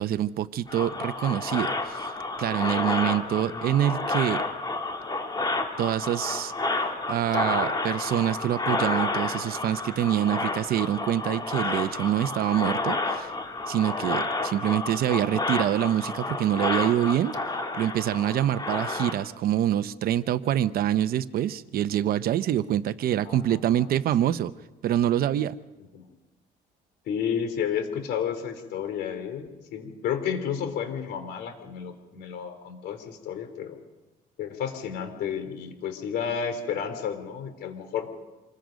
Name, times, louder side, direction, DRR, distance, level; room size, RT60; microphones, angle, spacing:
voice 1, 0.0-2.1 2.4-4.4 5.8-6.5 7.1-13.3 13.7-17.3 17.7-24.5 24.8-25.5, right 11 dB, 65° right, 13 dB, 0.9 m, -25 dB
sound 1, 0.7-19.1, left 2 dB, 25° left, 2.2 m, -30 dB
voice 2, 23.2-23.9 24.2-24.3 25.9-26.1 27.1-33.8 34.4-38.1, left 8 dB, 75° left, 8 dB, 3.4 m, -32 dB
27.0 x 21.0 x 5.2 m, 1.2 s
cardioid pair, 110°, 17 cm